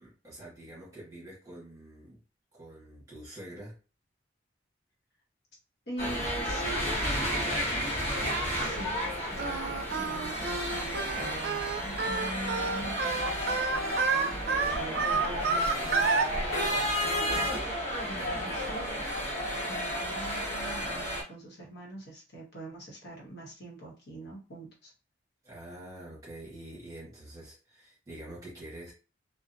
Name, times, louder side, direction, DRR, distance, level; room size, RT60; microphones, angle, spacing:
voice 1, 0.0-2.2 2.5-3.8 18.1-18.5 25.4-28.9, right 1 dB, 20° right, 1.2 m, -46 dB
voice 2, 5.9-19.3 19.6-24.9, right 2 dB, 60° left, 1.0 m, -44 dB
sound 1, 6.0-21.2, equal, 35° left, 1.3 m, -32 dB
Singing, 9.4-16.3, right 4 dB, 55° right, 0.4 m, -30 dB
2.8 x 2.0 x 2.6 m
head